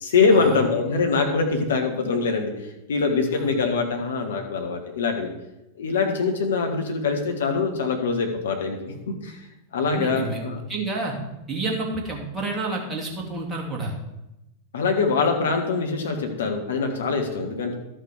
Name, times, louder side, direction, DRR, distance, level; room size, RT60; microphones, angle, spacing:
voice 1, 0.0-2.5 2.9-5.3 5.8-9.4 9.7-10.6 14.7-17.7, left 4 dB, 65° left, 3 dB, 1.5 m, -23 dB
voice 2, 9.8-10.4 10.7-11.1 11.5-13.9, right 3 dB, 20° right, -1 dB, 2.4 m, -29 dB
12.0 x 5.7 x 4.9 m, 0.93 s
figure-of-eight pair, 90°, 0 cm